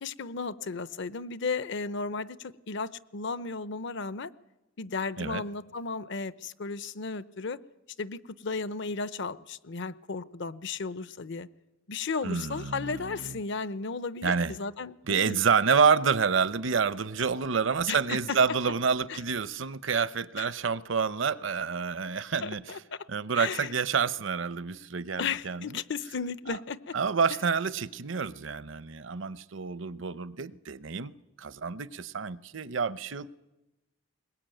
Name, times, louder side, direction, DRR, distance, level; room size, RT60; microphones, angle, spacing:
voice 1, 0.0-4.3 4.8-7.6 8.0-11.5 11.9-15.4 17.9-18.4 19.1-19.2 20.4-20.5 22.4-23.0 23.3-23.7 25.2-27.0, left 4 dB, 65° left, 0.7 m, -34 dB
voice 2, 12.2-13.4 14.2-14.5 15.1-22.6 23.1-25.8 26.5-26.6 26.9-31.1 31.4-33.4, right 6 dB, 65° right, 0.7 m, -28 dB
21.5 x 20.0 x 9.1 m
head